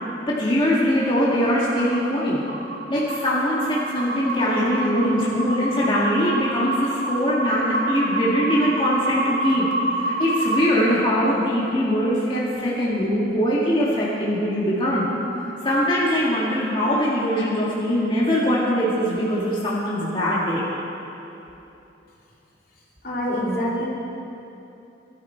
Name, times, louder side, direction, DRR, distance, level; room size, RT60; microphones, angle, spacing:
voice 1, 0.3-2.4 2.9-9.7 10.0-15.0 15.6-20.6, equal, 30° left, -7 dB, 2.0 m, -22 dB
sound 1, 1.8-2.0 2.5-10.6, right 2 dB, 80° right, 2.2 m, -27 dB
voice 2, 23.0-23.9, equal, 55° left, -5 dB, 2.9 m, -25 dB
19.5 x 12.5 x 4.6 m, 2.9 s
head